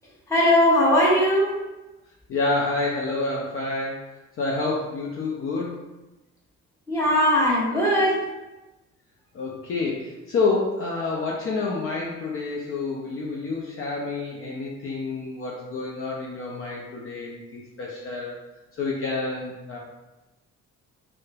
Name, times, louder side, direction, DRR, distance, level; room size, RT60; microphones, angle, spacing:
voice 1, 0.3-1.5 6.9-8.2, left 1 dB, 10° left, -7 dB, 1.0 m, -19 dB
voice 2, 2.3-5.8 9.3-18.4 18.7-19.8, left 3 dB, 45° left, -3 dB, 0.5 m, -28 dB
2.9 x 2.1 x 2.3 m, 1.0 s
cardioid pair, 90°, 30 cm